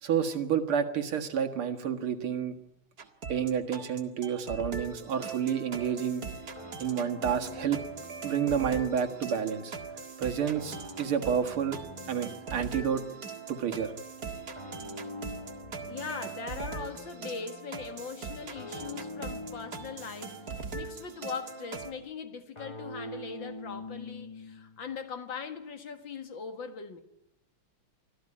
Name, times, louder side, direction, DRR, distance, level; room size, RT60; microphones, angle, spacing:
voice 1, 0.0-2.6 3.3-6.3 6.8-7.8 8.2-9.7 10.2-11.8 12.1-13.0 13.5-13.9, right 8 dB, 80° right, 2.7 m, -29 dB
sound 1, 3.0-21.9, right 4 dB, 45° right, 2.3 m, -41 dB
sound 2, 6.6-8.9 10.6-12.8 14.6-16.9 18.6-20.8 22.6-24.9, left 1 dB, 15° left, 1.3 m, -45 dB
voice 2, 15.9-27.0, left 6 dB, 60° left, 2.4 m, -40 dB
25.0 x 15.5 x 9.9 m
omnidirectional pair, 2.3 m